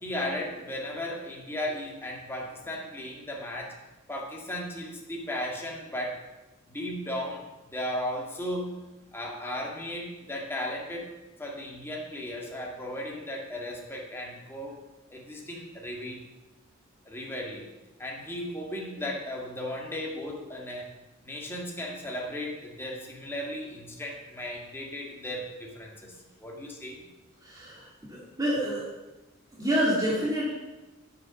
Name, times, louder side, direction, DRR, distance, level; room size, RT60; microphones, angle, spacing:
voice 1, 0.0-3.7 4.1-6.2 6.7-8.8 9.1-11.1 11.4-14.8 15.1-16.3 17.1-17.7 18.0-20.9 21.2-26.1 26.4-27.1, left 1 dB, 10° left, -1 dB, 1.8 m, -36 dB
voice 2, 27.4-28.9 29.5-30.5, equal, 15° right, -5 dB, 2.1 m, -28 dB
8.1 x 7.6 x 6.8 m, 1.1 s
head